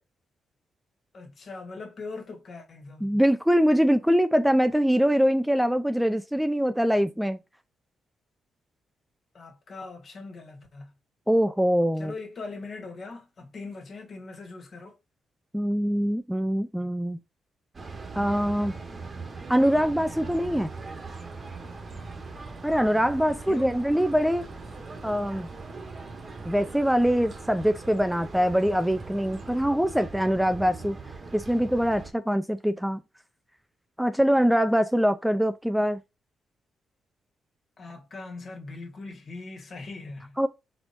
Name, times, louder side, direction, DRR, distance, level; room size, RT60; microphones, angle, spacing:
voice 1, 1.1-3.1 9.3-10.9 12.0-15.0 22.9-23.7 37.8-40.4, left 3 dB, 55° left, 1.6 m, -41 dB
voice 2, 3.0-7.4 11.3-12.1 15.5-17.2 18.1-18.8 19.5-20.7 22.6-24.4 25.0-25.5 26.4-31.0 31.3-33.0 34.0-36.0 40.4-40.5, equal, 5° right, 0.4 m, -23 dB
sound 1, 17.7-32.1, right 4 dB, 40° right, 1.3 m, -40 dB
sound 2, 20.3-29.6, right 3 dB, 60° right, 1.6 m, -52 dB
4.4 x 4.2 x 2.6 m
cardioid pair, 70°, 0 cm